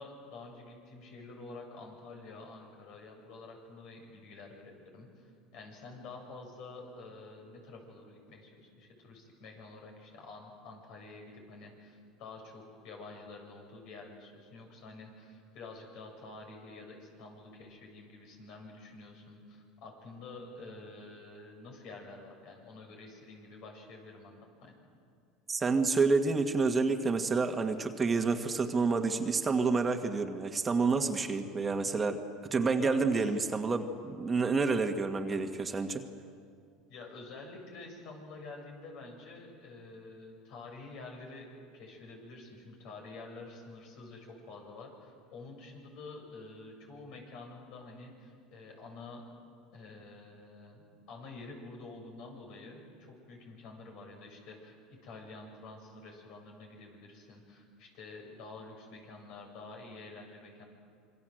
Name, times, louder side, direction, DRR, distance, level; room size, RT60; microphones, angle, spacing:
voice 1, 0.0-24.7 32.7-33.3 36.9-49.2 49.7-50.8 51.1-60.6, left 3 dB, 60° left, 2 dB, 7.0 m, -48 dB
voice 2, 25.5-32.2 32.5-36.0, right 4 dB, 20° right, 6 dB, 1.7 m, -29 dB
26.5 x 24.0 x 7.9 m, 2.3 s
supercardioid pair, 110°, 0 cm